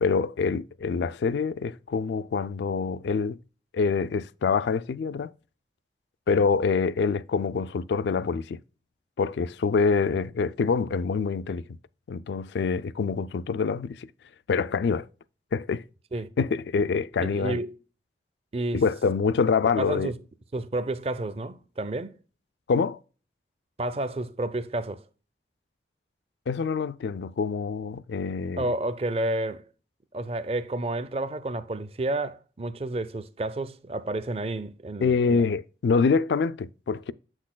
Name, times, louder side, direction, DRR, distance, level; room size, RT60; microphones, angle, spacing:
voice 1, 0.0-3.4 3.7-5.3 6.3-8.6 9.2-11.6 12.1-14.1 14.5-15.1 15.5-15.8 16.4-17.6 18.7-20.1 22.7-23.0 26.5-28.7 35.0-37.1, left 5 dB, 80° left, 0.3 m, -25 dB
voice 2, 17.2-17.8 18.5-18.8 19.8-20.2 20.5-22.2 23.8-25.0 28.6-29.6 30.1-35.4, right 2 dB, 35° right, 0.5 m, -30 dB
8.2 x 6.2 x 2.2 m
head